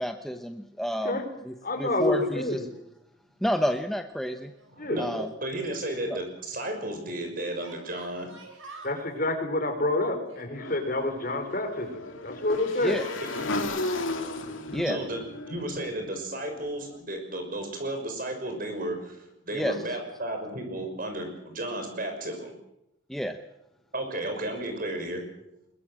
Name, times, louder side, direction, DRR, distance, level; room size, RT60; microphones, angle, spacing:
voice 1, 0.0-2.6 3.4-4.5 5.0-5.3 6.1-6.2 12.8-13.0 14.7-15.0 19.5-19.8 23.1-23.4, equal, ahead, 6 dB, 0.9 m, -30 dB
voice 2, 1.6-2.6 4.8-5.0 8.8-13.0, left 2 dB, 45° left, 5 dB, 4.4 m, -28 dB
Yell, 4.3-5.2 5.5-5.6 7.6-9.0 10.3-11.7 12.6-13.6, right 2 dB, 85° right, 7.0 m, -48 dB
voice 3, 4.7-8.3 14.8-15.2 15.5-22.5 23.9-25.2, right 1 dB, 45° right, 5 dB, 6.0 m, -33 dB
Motorcycle / Engine, 10.6-16.7, left 2 dB, 85° left, 2.8 m, -34 dB
22.0 x 21.5 x 7.7 m, 0.84 s
head